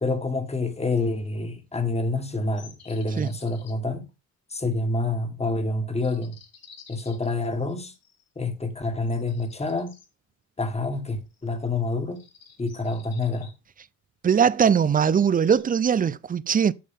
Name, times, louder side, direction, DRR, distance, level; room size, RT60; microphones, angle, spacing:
voice 1, 0.0-4.0 4.5-6.4 6.9-7.9 8.4-10.0 10.6-12.2 12.6-13.5, left 2 dB, 20° left, 1.8 m, -27 dB
sound 1, 2.6-3.7 6.0-8.3 9.1-10.1 11.3-11.7 12.1-13.5 14.8-15.6, left 6 dB, 55° left, 3.0 m, -52 dB
voice 2, 14.2-16.7, right 7 dB, 30° right, 0.5 m, -21 dB
9.2 x 6.3 x 3.7 m
cardioid pair, 90°, 30 cm